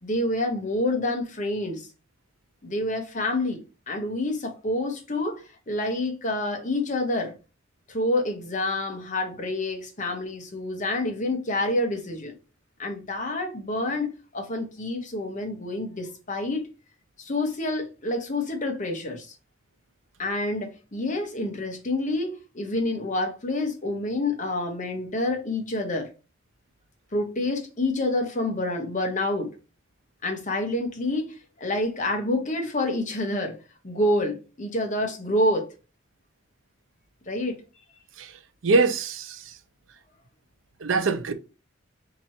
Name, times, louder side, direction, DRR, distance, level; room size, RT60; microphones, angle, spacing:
voice 1, 0.0-1.9 2.6-7.3 7.9-12.3 12.8-16.7 17.2-19.3 20.2-26.1 27.1-29.5 30.2-33.6 33.8-35.7 37.3-37.6, left 1 dB, 40° left, 1.1 m, -28 dB
voice 2, 38.6-39.4 40.8-41.3, right 4 dB, 85° right, 0.6 m, -23 dB
4.3 x 3.0 x 2.8 m
head